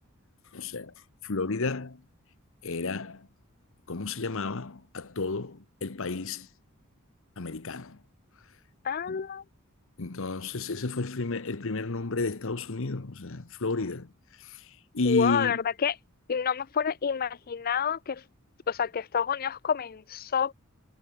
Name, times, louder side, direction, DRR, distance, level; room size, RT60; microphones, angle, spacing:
voice 1, 0.5-0.9 1.2-2.0 2.6-3.3 3.9-6.5 7.4-8.0 9.1-9.2 10.0-14.1 14.4-14.6 14.9-15.6, left 3 dB, 65° left, 1.1 m, -32 dB
voice 2, 8.8-9.4 15.1-16.0 16.3-18.2 18.7-20.5, left 7 dB, 45° left, 0.5 m, -28 dB
head